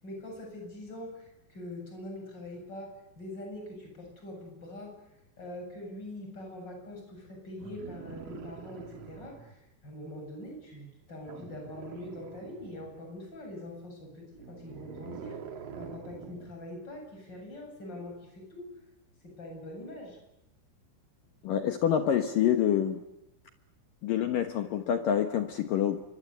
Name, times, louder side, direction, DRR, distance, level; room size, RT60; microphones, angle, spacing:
voice 1, 0.0-2.9 3.2-4.9 5.4-15.4 15.8-18.7 19.2-20.2, left 1 dB, 20° left, 2 dB, 8.4 m, -43 dB
sound 1, 7.6-9.6 11.2-13.0 14.3-16.6 17.9-18.0, right 6 dB, 55° right, 1.8 m, -45 dB
voice 2, 21.4-23.0 24.0-26.0, left 9 dB, 70° left, 7 dB, 2.1 m, -27 dB
29.5 x 25.0 x 8.2 m, 0.89 s
omnidirectional pair, 5.6 m